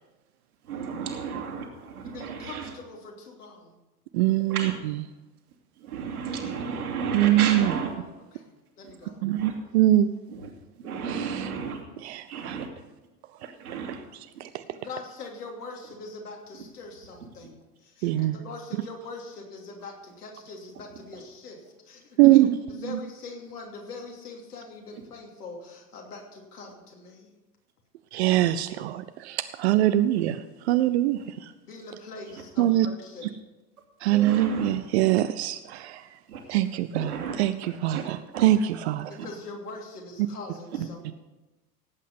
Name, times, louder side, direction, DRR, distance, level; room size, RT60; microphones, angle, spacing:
voice 1, 0.6-2.7 4.5-4.7 5.8-7.9 9.3-9.5 10.3-10.5 10.8-11.8 12.3-12.7 13.4-14.0 14.3-14.4 21.1-21.2 30.1-30.2 31.1-31.2 32.3-32.4 34.1-34.7 36.3-36.4 37.1-37.4 37.9-38.0 38.3-38.4 39.2-39.3, right 6 dB, 65° right, 1 dB, 2.6 m, -33 dB
voice 2, 2.0-3.8 4.4-4.5 8.3-9.2 14.7-22.4 22.8-27.3 31.7-33.3 39.1-41.0, left 3 dB, 70° left, 0 dB, 2.9 m, -42 dB
voice 3, 4.1-4.7 7.1-7.7 9.2-10.1 11.0-11.5 12.0-12.6 13.7-13.8 14.4-14.6 18.0-18.4 22.2-22.5 22.8-23.0 28.1-31.5 32.6-32.9 34.0-36.1 36.5-37.1 37.4-39.2 41.1-41.2, right 14 dB, 45° right, 11 dB, 0.6 m, -23 dB
17.0 x 8.4 x 5.4 m, 1.1 s
figure-of-eight pair, 80°, 48 cm